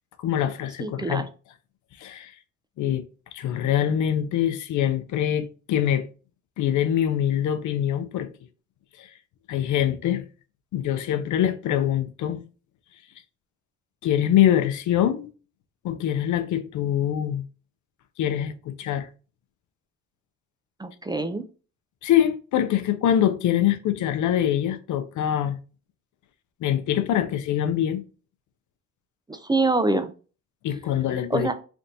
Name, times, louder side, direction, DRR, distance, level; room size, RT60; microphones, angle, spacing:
voice 1, 0.2-1.3 2.0-2.3 2.8-3.0 3.3-6.1 6.6-8.3 9.0-9.1 9.5-10.2 10.7-12.4 14.0-15.3 15.8-17.4 18.2-19.1 22.0-25.6 26.6-28.0 30.6-31.5, left 10 dB, 75° left, 0.6 m, -24 dB
voice 2, 0.8-1.2 20.8-21.4 29.3-30.1 31.3-31.5, right 2 dB, 15° right, 0.4 m, -25 dB
3.4 x 2.6 x 4.1 m
cardioid pair, 90°, 30 cm